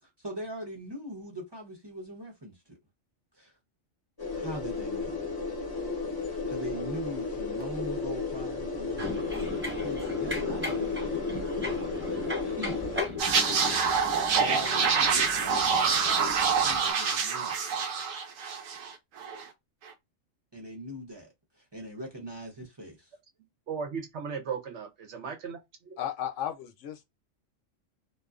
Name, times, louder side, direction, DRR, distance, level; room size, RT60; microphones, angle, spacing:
voice 1, 0.0-2.8 3.3-3.5 4.3-5.2 6.2-11.0 11.6-11.8 12.5-12.9 14.4-17.6 20.5-21.3 21.6-23.1, right 1 dB, 25° right, 0.7 m, -41 dB
sound 1, 4.2-13.0, left 4 dB, 20° left, 0.7 m, -33 dB
sound 2, 9.0-16.9, left 3 dB, 10° right, 1.1 m, -36 dB
sound 3, 13.2-18.9 19.2-19.4, right 6 dB, 90° right, 1.0 m, -26 dB
voice 2, 23.7-26.0, right 6 dB, 65° right, 0.9 m, -36 dB
voice 3, 26.0-27.0, left 10 dB, 70° left, 0.9 m, -34 dB
2.6 x 2.4 x 2.3 m
omnidirectional pair, 1.3 m